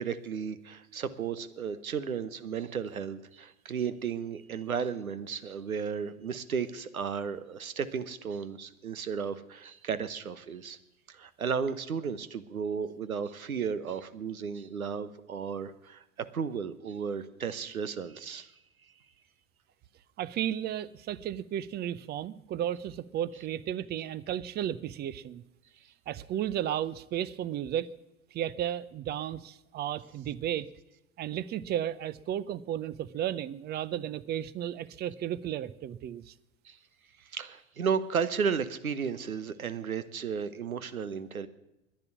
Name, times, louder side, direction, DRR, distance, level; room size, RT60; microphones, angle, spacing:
voice 1, 0.0-10.8 11.1-18.5 36.6-36.8 37.3-41.5, right 6 dB, 90° right, 15 dB, 1.0 m, -34 dB
voice 2, 20.2-25.4 26.1-27.9 28.3-30.7 31.2-36.3, right 11 dB, 25° right, 18 dB, 0.6 m, -34 dB
11.0 x 10.5 x 9.6 m, 0.90 s
hypercardioid pair, 95°, 41 cm